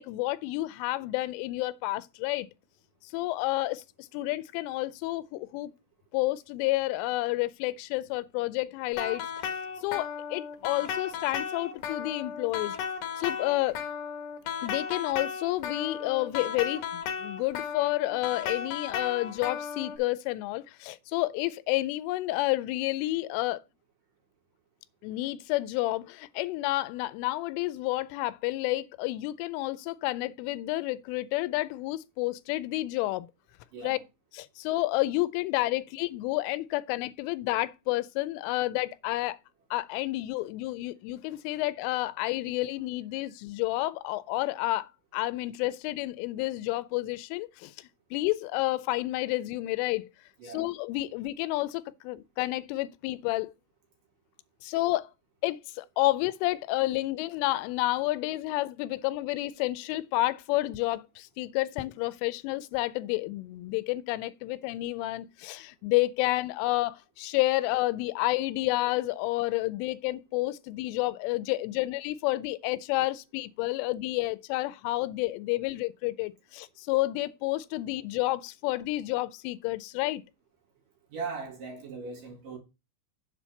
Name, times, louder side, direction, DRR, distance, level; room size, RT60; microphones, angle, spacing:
voice 1, 0.0-2.5 3.1-5.7 6.1-12.8 13.2-13.8 14.6-23.6 25.0-33.3 33.8-34.0 34.3-39.4 39.7-50.1 50.4-53.5 54.6-55.1 55.4-80.2, left 18 dB, 90° left, 3.1 m, -30 dB
sound 1, 8.9-20.0, left 7 dB, 70° left, 3.1 m, -35 dB
voice 2, 33.7-34.0 50.4-50.7 81.1-82.6, right 4 dB, 55° right, 3.1 m, -39 dB
7.5 x 4.4 x 6.9 m
omnidirectional pair, 5.6 m